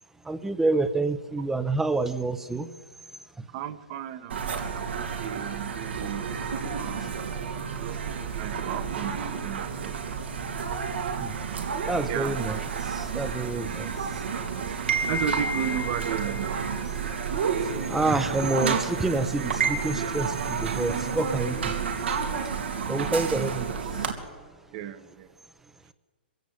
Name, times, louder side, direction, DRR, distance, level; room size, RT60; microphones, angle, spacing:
voice 1, 0.2-2.7 11.2-11.3 11.9-14.2 17.9-21.7 22.9-23.7, right 2 dB, 5° right, 12 dB, 0.8 m, -28 dB
voice 2, 3.5-6.3 6.8-7.2 7.8-8.0 8.3-10.0 12.1-12.4 15.1-16.5 23.1-23.5 24.7-25.3, right 10 dB, 40° right, 12 dB, 1.3 m, -34 dB
sound 1, 4.3-24.1, right 6 dB, 85° right, 3.1 m, -30 dB
23.0 x 16.0 x 8.2 m, 1.5 s
hypercardioid pair, 145°, 6 cm